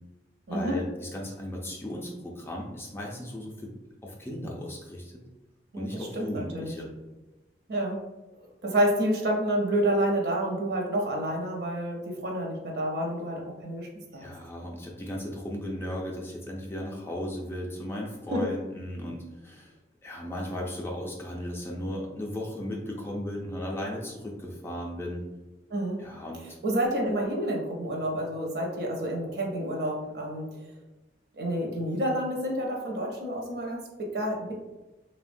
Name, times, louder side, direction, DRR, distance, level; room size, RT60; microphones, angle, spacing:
voice 1, 0.5-3.7 4.0-5.1 5.7-6.9 14.2-19.7 20.0-25.2 26.0-26.4, left 1 dB, 15° left, -2 dB, 0.3 m, -36 dB
voice 2, 5.7-6.8 7.7-8.0 8.4-14.3 18.3-18.5 25.7-26.0 26.6-30.6 31.3-34.5, right 1 dB, 65° right, 0 dB, 0.6 m, -29 dB
3.2 x 2.1 x 2.5 m, 1.1 s
head